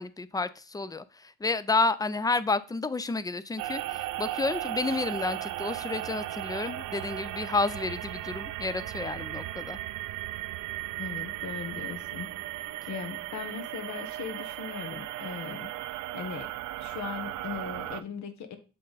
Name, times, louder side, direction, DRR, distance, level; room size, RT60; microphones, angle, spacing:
voice 1, 0.0-9.8, left 3 dB, 15° left, 15 dB, 0.4 m, -30 dB
sound 1, 3.6-18.0, right 15 dB, 80° right, 0.5 m, -36 dB
voice 2, 11.0-12.3 12.9-15.7 16.1-18.6, left 6 dB, 70° left, 7 dB, 1.2 m, -39 dB
7.5 x 3.9 x 4.0 m, 0.34 s
cardioid pair, 90°, 30 cm